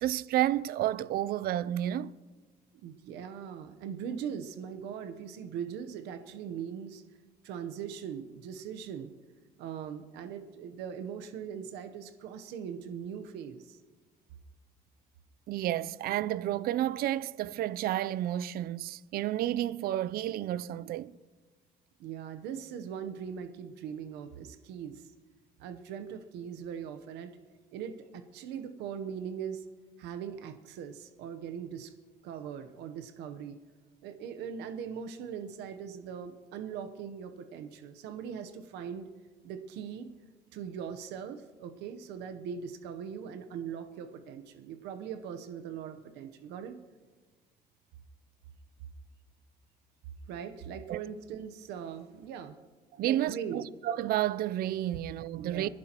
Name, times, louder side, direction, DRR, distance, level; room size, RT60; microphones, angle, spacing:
voice 1, 0.0-2.1 15.5-21.1 50.9-51.0 53.0-55.7, right 13 dB, 65° right, 0.4 m, -31 dB
voice 2, 2.8-7.0 7.4-9.1 9.6-13.8 22.0-25.1 25.6-27.3 27.7-29.6 30.0-31.9 32.2-33.6 34.0-39.1 39.4-40.1 40.5-46.8 50.3-52.6 53.0-53.7 55.3-55.7, right 7 dB, 85° right, 0.9 m, -40 dB
24.0 x 11.0 x 2.9 m
cardioid pair, 110°, 17 cm